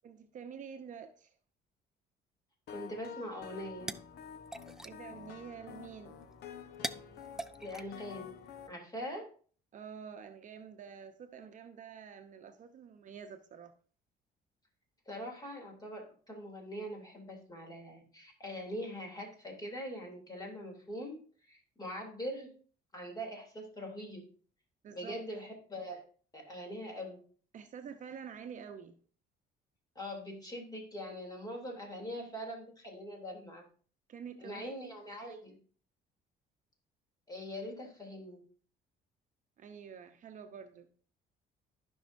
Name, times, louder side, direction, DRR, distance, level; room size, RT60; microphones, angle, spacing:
voice 1, 0.0-1.4 4.8-6.2 9.7-13.7 24.8-25.2 27.5-29.0 34.1-34.7 35.3-35.4 39.6-40.9, right 7 dB, 50° right, 7 dB, 0.8 m, -48 dB
sound 1, 2.7-8.7, left 7 dB, 70° left, 0.9 m, -49 dB
voice 2, 2.7-3.9 7.6-8.3 8.7-9.3 15.1-21.2 21.5-22.5 22.9-24.2 24.9-26.0 26.3-27.2 29.9-33.6 34.4-35.6 37.3-38.4, equal, 20° left, 0 dB, 3.1 m, -42 dB
sound 2, 3.4-8.7, right 1 dB, 5° right, 0.4 m, -46 dB
15.0 x 5.5 x 2.6 m, 0.43 s
cardioid pair, 110°, 17 cm